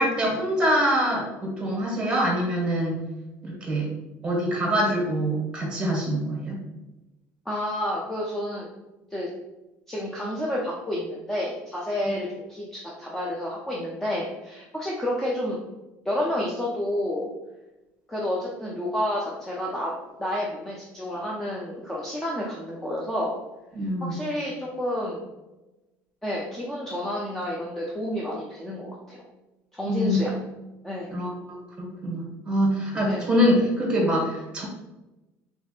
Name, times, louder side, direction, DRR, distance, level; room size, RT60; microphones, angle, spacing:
voice 1, 0.0-3.0 3.4-3.9 4.2-6.6 12.0-12.1 23.7-24.1 29.8-30.2 31.1-34.6, equal, 15° right, -3 dB, 1.4 m, -25 dB
voice 2, 7.5-8.7 9.1-9.3 9.9-15.6 16.1-17.3 18.1-23.4 24.0-25.3 26.2-29.2 29.7-30.4 30.8-31.1 33.1-33.3, left 1 dB, 5° left, -4 dB, 0.5 m, -30 dB
3.6 x 3.4 x 2.4 m, 1.0 s
cardioid pair, 135°, 6 cm